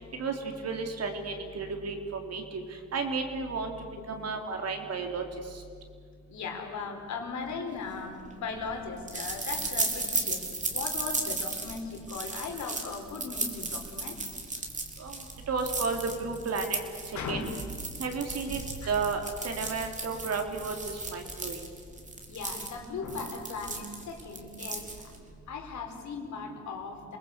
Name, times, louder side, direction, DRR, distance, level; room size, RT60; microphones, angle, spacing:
voice 1, 0.2-2.6 2.9-3.7 4.1-5.2 15.0-15.1 15.5-16.8 17.3-17.4 18.0-20.8 21.1-21.6, right 4 dB, 55° right, 4 dB, 3.7 m, -32 dB
voice 2, 6.3-14.2 17.1-17.5 18.8-18.9 22.3-24.9 25.5-27.2, left 4 dB, 70° left, 2 dB, 4.7 m, -38 dB
sound 1, 7.9-25.3, right 2 dB, 25° right, 3.6 m, -36 dB
28.5 x 19.5 x 8.4 m, 2.1 s
cardioid pair, 90°, 30 cm